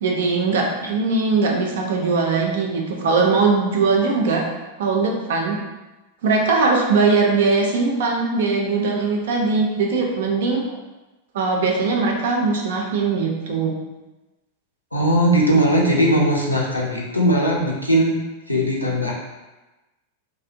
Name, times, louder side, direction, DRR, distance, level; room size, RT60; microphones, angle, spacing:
voice 1, 0.0-4.5 4.8-5.6 6.2-10.6 11.3-13.8, right 4 dB, 60° right, 0 dB, 0.5 m, -20 dB
voice 2, 14.9-18.2 18.5-19.1, right 1 dB, 85° left, -3 dB, 0.5 m, -19 dB
2.6 x 2.0 x 2.7 m, 1.1 s
figure-of-eight pair, 90°, 0 cm